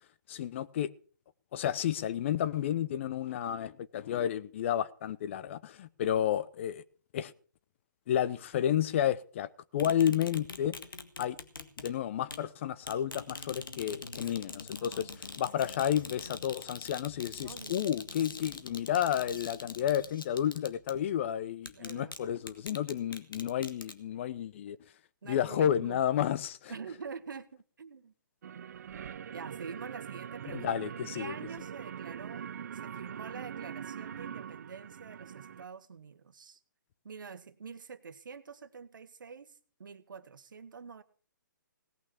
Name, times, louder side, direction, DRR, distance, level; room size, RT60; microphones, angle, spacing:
voice 1, 0.3-0.9 1.5-6.8 7.1-7.3 8.1-10.7 11.2-11.4 11.8-15.1 15.4-24.8 25.2-26.7 30.5-31.3, left 10 dB, 35° left, 0.7 m, -31 dB
sound 1, 9.8-11.9 12.3-12.4 12.8-21.0 21.6-22.2 22.5-23.9, left 4 dB, 85° left, 1.8 m, -44 dB
voice 2, 14.8-15.2 17.4-17.8 21.7-22.2 25.2-26.0 26.7-28.1 28.5-28.7 29.3-32.4 32.7-36.6 37.0-41.0, right 5 dB, 70° right, 1.4 m, -46 dB
sound 2, 28.4-35.6, right 8 dB, 55° right, 0.6 m, -43 dB
17.5 x 6.2 x 8.1 m
hypercardioid pair, 150°, 11 cm